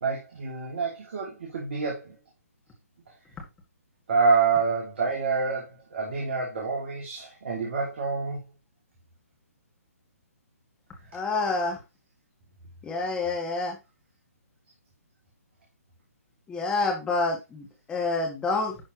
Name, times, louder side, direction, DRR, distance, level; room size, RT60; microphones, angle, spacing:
voice 1, 0.0-2.2 4.1-8.4, right 4 dB, 50° right, 2.6 m, -27 dB
voice 2, 11.1-11.8 12.8-13.8 16.5-18.8, left 3 dB, 10° left, 2.1 m, -28 dB
11.5 x 4.3 x 3.1 m
figure-of-eight pair, 140°, 8 cm